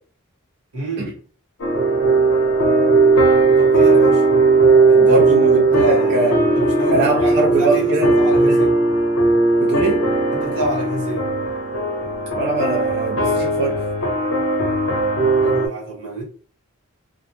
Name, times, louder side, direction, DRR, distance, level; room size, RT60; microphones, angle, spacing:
voice 1, 0.7-1.1 3.6-4.2 4.9-8.8 10.3-11.3 15.4-16.2, right 1 dB, 80° right, 1.4 m, -27 dB
sound 1, 1.6-15.7, right 3 dB, 60° left, 0.7 m, -17 dB
voice 2, 5.0-6.3 6.9-8.1 8.5-8.6 9.6-10.1 12.4-13.8, right 3 dB, 50° right, 0.4 m, -22 dB
2.5 x 2.0 x 3.0 m
head